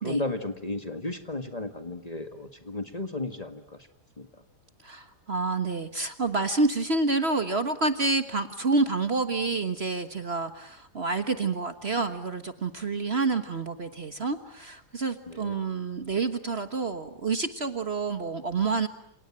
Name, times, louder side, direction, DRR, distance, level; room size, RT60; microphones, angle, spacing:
voice 1, 0.0-3.8 4.2-4.3 15.3-15.5, left 2 dB, 25° left, 7 dB, 1.9 m, -34 dB
voice 2, 4.8-18.9, right 3 dB, 40° right, 9 dB, 1.5 m, -28 dB
28.5 x 28.0 x 7.5 m, 0.68 s
omnidirectional pair, 1.7 m